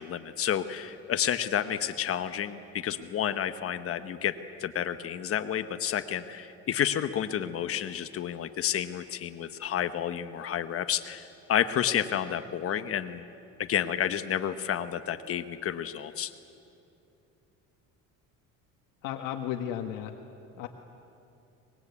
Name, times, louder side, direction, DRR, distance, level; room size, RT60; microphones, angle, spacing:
voice 1, 0.0-13.3 13.6-16.3, left 9 dB, 45° left, 10 dB, 1.0 m, -30 dB
voice 2, 19.0-20.1 20.6-20.7, left 10 dB, 80° left, 3 dB, 1.5 m, -34 dB
25.0 x 21.5 x 8.3 m, 2.8 s
cardioid pair, 130°, 31 cm